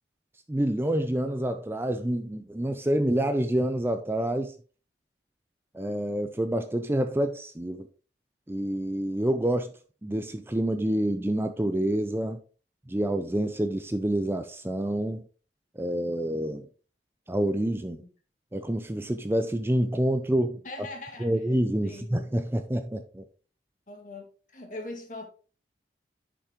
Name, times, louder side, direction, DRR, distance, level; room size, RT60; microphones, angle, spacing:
voice 1, 0.5-4.5 5.7-7.9 8.5-9.7 10.0-12.4 12.9-15.2 15.8-16.7 17.3-18.0 18.5-20.6 21.2-23.2, right 1 dB, 15° right, 0.4 m, -27 dB
voice 2, 20.6-21.4 21.8-22.1 23.9-24.3 24.5-25.2, left 2 dB, 45° left, 1.9 m, -40 dB
10.0 x 5.7 x 3.0 m
head